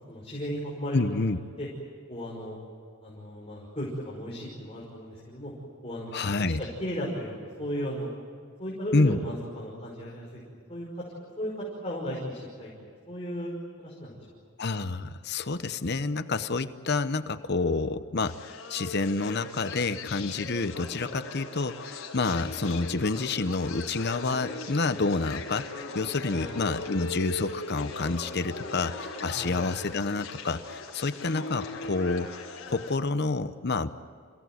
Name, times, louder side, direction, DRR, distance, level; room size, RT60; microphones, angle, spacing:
voice 1, 0.0-1.7 2.1-2.6 3.0-5.5 5.8-6.1 6.4-8.1 8.6-10.4 10.7-14.1 26.3-26.5 29.3-29.6, equal, 25° left, -5 dB, 5.6 m, -36 dB
voice 2, 0.9-1.4 6.1-6.6 8.9-9.2 14.6-32.3 32.7-33.9, left 3 dB, 50° left, 11 dB, 0.8 m, -28 dB
sound 1, 18.2-33.0, left 3 dB, 70° left, 5.3 m, -39 dB
29.0 x 17.0 x 9.3 m, 2.3 s
head